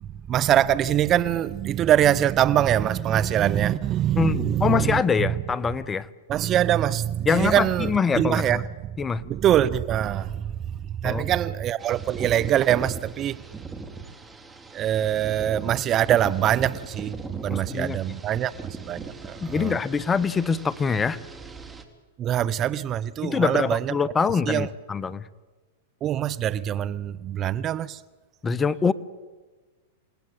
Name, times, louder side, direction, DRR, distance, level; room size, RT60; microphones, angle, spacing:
voice 1, 0.0-5.0 6.3-8.6 9.3-10.5 10.9-13.4 14.7-19.8 22.2-23.9 24.5-24.7 26.0-28.0, right 11 dB, 35° right, 0.8 m, -23 dB
voice 2, 4.2-6.1 7.3-8.6 9.0-9.2 11.0-11.2 17.5-18.0 19.4-21.2 23.2-25.3 28.4-28.9, left 5 dB, 20° left, 1.1 m, -24 dB
sound 1, 11.8-21.8, right 4 dB, 10° right, 3.1 m, -39 dB
28.5 x 18.5 x 9.3 m
hypercardioid pair, 105°, 0 cm